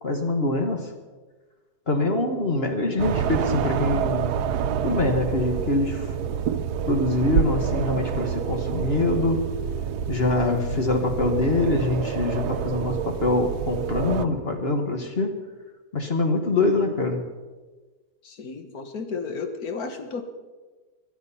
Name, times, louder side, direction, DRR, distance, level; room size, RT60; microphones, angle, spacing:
voice 1, 0.0-0.9 1.9-4.4 4.8-6.1 6.9-9.5 10.1-15.4 15.9-17.2, left 2 dB, 40° left, 4 dB, 1.5 m, -24 dB
sound 1, 3.0-14.3, right 8 dB, 80° right, 1.3 m, -27 dB
voice 2, 18.2-20.2, left 4 dB, 70° left, 7 dB, 1.9 m, -33 dB
23.5 x 8.6 x 5.6 m, 1.3 s
omnidirectional pair, 1.7 m